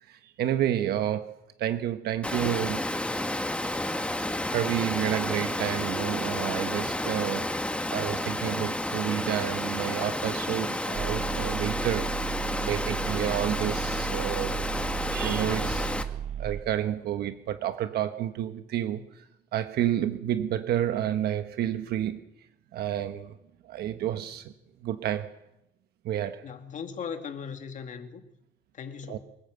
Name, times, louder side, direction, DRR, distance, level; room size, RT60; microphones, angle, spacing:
voice 1, 0.1-2.9 4.5-7.5 7.9-12.2 12.6-14.8 15.1-19.2 19.5-22.2 22.7-23.4 23.6-24.5 24.8-25.3 26.0-26.4 29.1-29.2, right 11 dB, 70° right, 1.3 m, -30 dB
Water, 2.2-16.0, left 1 dB, 5° left, 1.5 m, -31 dB
sound 1, 10.9-16.6, right 9 dB, 45° right, 0.7 m, -34 dB
voice 2, 26.4-28.3 28.7-29.2, left 6 dB, 50° left, 2.5 m, -38 dB
24.5 x 14.5 x 8.1 m
cardioid pair, 110°, 17 cm